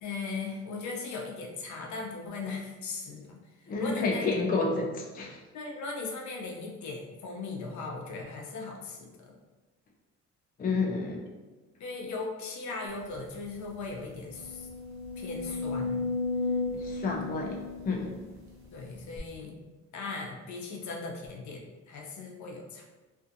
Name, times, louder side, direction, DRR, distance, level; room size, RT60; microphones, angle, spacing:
voice 1, 0.0-4.2 5.5-9.3 11.8-14.7 15.2-16.1 18.7-19.6 19.9-22.8, left 3 dB, 70° left, -1 dB, 0.6 m, -38 dB
voice 2, 3.7-5.4 10.6-11.2 16.7-18.2, left 3 dB, 30° left, 0 dB, 0.4 m, -30 dB
sound 1, 13.1-13.2 13.6-13.7 14.3-18.5 19.2-19.3, left 3 dB, 65° right, 0.8 m, -34 dB
2.6 x 2.4 x 2.6 m, 1.2 s
cardioid pair, 90°, 30 cm